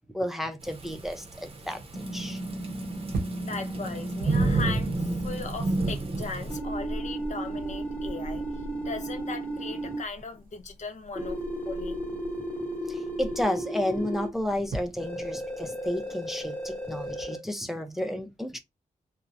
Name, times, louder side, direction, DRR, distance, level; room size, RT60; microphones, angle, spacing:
voice 1, 0.1-1.8 2.1-2.4 12.9-18.6, left 1 dB, ahead, 0.5 m, -32 dB
Thunderstorm / Rain, 0.6-6.6, right 3 dB, 40° right, 0.7 m, -31 dB
sound 1, 1.4-17.2, right 1 dB, 90° right, 0.7 m, -43 dB
sound 2, 1.9-5.4 6.5-10.0 11.1-14.3 15.0-17.4, right 1 dB, 15° left, 1.0 m, -34 dB
voice 2, 3.4-8.4 8.8-11.4 11.7-12.0, left 4 dB, 55° left, 0.5 m, -38 dB
2.9 x 2.1 x 2.5 m
cardioid pair, 75°, 15 cm